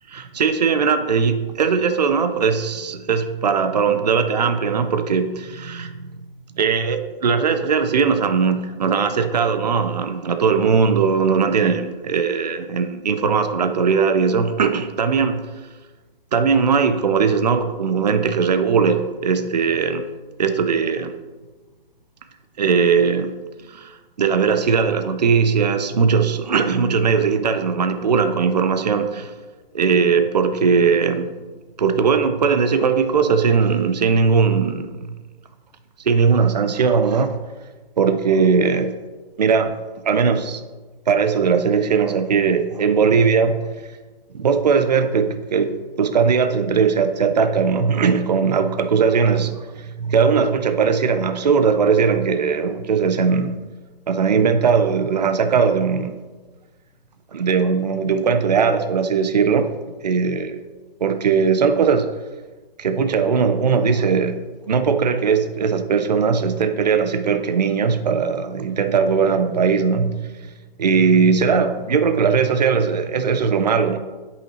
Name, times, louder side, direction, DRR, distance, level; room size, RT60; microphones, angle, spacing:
voice 1, 0.1-6.1 6.5-15.4 16.3-20.0 20.4-21.1 22.6-23.3 23.7-29.3 29.7-31.3 31.8-35.1 36.0-37.4 38.0-38.9 39.4-40.6 41.1-43.7 44.3-53.6 54.1-56.2 57.3-59.7 60.0-60.6 61.0-62.1 62.8-64.4 64.7-70.5 70.8-74.0, right 5 dB, 45° right, 8 dB, 0.5 m, -19 dB
9.1 x 5.6 x 2.8 m, 1.3 s
hypercardioid pair, 175°, 29 cm